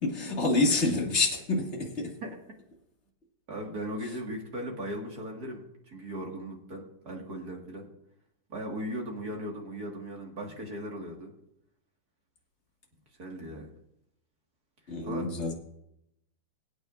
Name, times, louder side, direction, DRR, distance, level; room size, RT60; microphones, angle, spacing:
voice 1, 0.0-2.1 14.9-15.5, left 2 dB, 25° left, -1 dB, 1.8 m, -27 dB
voice 2, 3.5-7.8 8.5-11.3 13.2-13.7 15.0-15.3, right 1 dB, 35° right, 0 dB, 1.9 m, -38 dB
23.0 x 8.9 x 2.6 m, 0.79 s
omnidirectional pair, 3.7 m